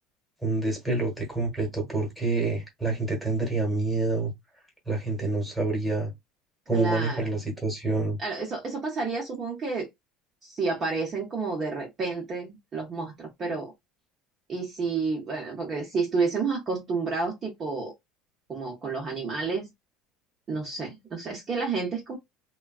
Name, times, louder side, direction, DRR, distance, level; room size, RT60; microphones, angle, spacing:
voice 1, 0.4-4.3 4.9-6.1 6.7-8.2, right 3 dB, ahead, 1.1 m, -27 dB
voice 2, 6.7-7.2 8.2-9.9 10.4-13.7 14.5-17.9 18.5-19.7 20.5-22.2, right 4 dB, 25° right, 0.6 m, -30 dB
3.4 x 2.2 x 2.3 m
cardioid pair, 170°, 0 cm